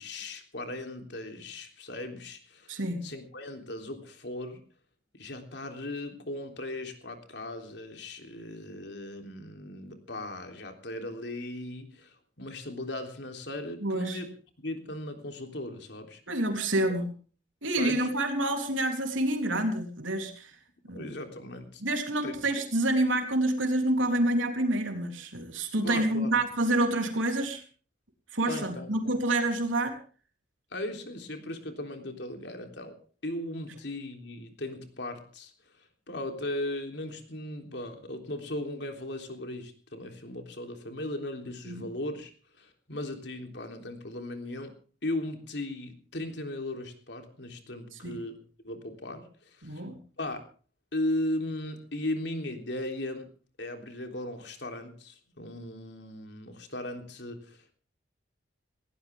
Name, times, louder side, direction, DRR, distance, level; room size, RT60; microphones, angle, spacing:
voice 1, 0.0-4.7 5.1-14.3 14.6-16.2 17.8-18.1 20.9-21.8 22.2-22.4 25.8-26.4 28.5-28.9 30.7-42.3 42.6-48.4 48.6-49.9 50.2-50.4 50.9-53.3 53.6-57.7, left 1 dB, 60° left, 5 dB, 3.6 m, -37 dB
voice 2, 2.7-3.1 13.8-14.2 16.3-17.1 17.6-20.6 20.9-21.0 21.8-27.6 28.3-30.0 41.7-41.9 47.9-48.2 49.6-50.0, right 1 dB, 85° right, 4 dB, 3.6 m, -28 dB
19.0 x 17.5 x 3.7 m, 0.40 s
head